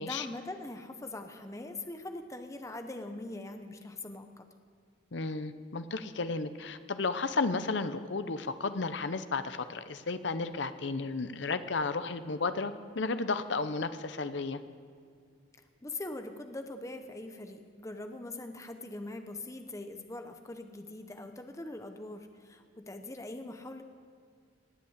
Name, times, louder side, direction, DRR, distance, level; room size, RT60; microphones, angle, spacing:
voice 1, 0.0-4.4 15.8-23.8, left 2 dB, 15° left, 6 dB, 0.8 m, -42 dB
voice 2, 5.1-14.6, left 3 dB, 65° left, 11 dB, 0.7 m, -33 dB
19.0 x 8.4 x 8.1 m, 2.2 s
head